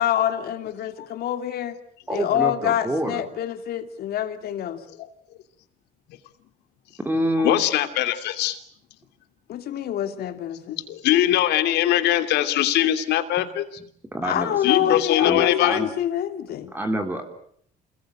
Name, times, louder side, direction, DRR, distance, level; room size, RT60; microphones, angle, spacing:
voice 1, 0.0-1.8 2.1-4.8 9.5-10.8 14.2-16.7, left 10 dB, 65° left, 8 dB, 3.0 m, -26 dB
voice 2, 2.1-3.2 7.0-7.5 14.1-15.9 16.7-17.2, equal, 10° right, 4 dB, 3.7 m, -27 dB
voice 3, 7.4-8.6 10.8-13.8 14.6-15.9, left 13 dB, 80° left, 9 dB, 2.9 m, -22 dB
29.0 x 20.5 x 9.1 m, 0.66 s
cardioid pair, 110°, 17 cm